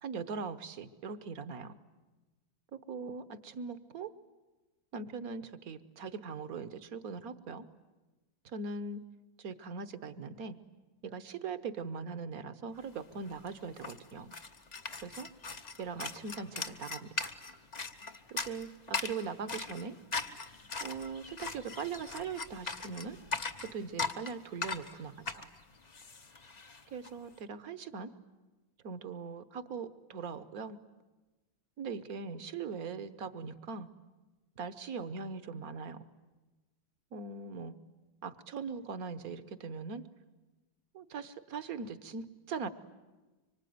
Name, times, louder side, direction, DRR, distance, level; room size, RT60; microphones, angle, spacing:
voice 1, 0.0-1.8 2.7-4.1 4.9-7.7 8.4-9.0 9.4-10.6 11.0-14.3 15.0-15.3 15.8-17.3 18.3-20.0 20.8-23.2 23.6-25.5 26.9-28.1 28.8-30.8 31.8-33.9 34.6-36.0 37.1-37.7 38.2-40.0 40.9-42.7, right 5 dB, 55° right, 13 dB, 1.4 m, -40 dB
sound 1, 13.0-13.1 13.2-27.1, left 4 dB, 35° left, 0.7 m, -40 dB
25.0 x 24.5 x 9.4 m, 1.2 s
omnidirectional pair, 2.1 m